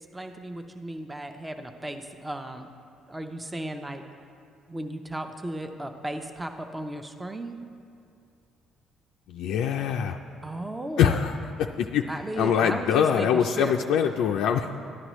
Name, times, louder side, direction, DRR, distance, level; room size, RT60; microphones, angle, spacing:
voice 1, 0.0-2.7 3.1-4.0 4.7-7.6 10.4-11.1 12.1-13.7, right 1 dB, 15° right, 5 dB, 0.6 m, -35 dB
voice 2, 9.3-10.2 11.0-12.0 12.4-14.8, left 8 dB, 75° left, 3 dB, 0.3 m, -24 dB
13.0 x 9.7 x 3.1 m, 2.5 s
supercardioid pair, 80°, 0 cm